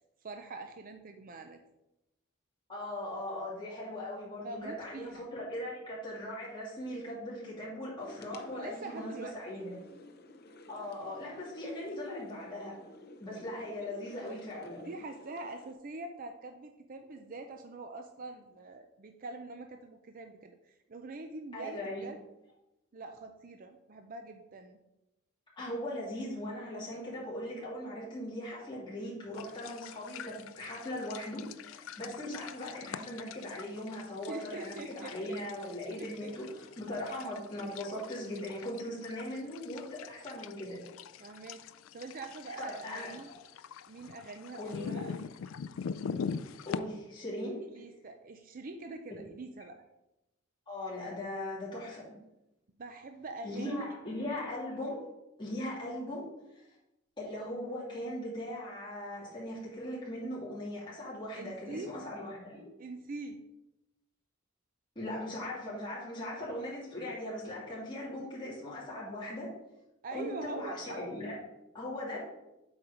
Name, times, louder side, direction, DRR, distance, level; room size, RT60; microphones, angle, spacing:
voice 1, 0.2-1.6 4.4-5.3 8.6-9.4 14.3-14.4 14.8-22.2 22.9-24.8 34.3-35.4 36.0-36.3 41.2-41.7 41.9-43.3 43.9-45.3 47.7-49.8 52.8-53.9 54.3-54.5 61.3-61.9 62.8-63.4 70.0-71.0, right 2 dB, 40° right, 5 dB, 0.5 m, -44 dB
voice 2, 2.7-9.7 10.7-12.7 13.2-14.8 21.5-22.1 25.6-40.8 42.6-43.3 44.6-44.9 46.7-47.6 50.7-52.1 53.4-55.1 55.4-56.2 57.2-62.7 64.9-69.5 70.1-71.4 71.7-72.2, left 1 dB, 25° left, -7 dB, 2.6 m, -39 dB
sound 1, 8.0-15.7, left 2 dB, 50° left, 0.7 m, -53 dB
sound 2, 29.3-46.8, left 6 dB, 70° left, 0.3 m, -44 dB
7.9 x 4.5 x 5.0 m, 0.94 s
head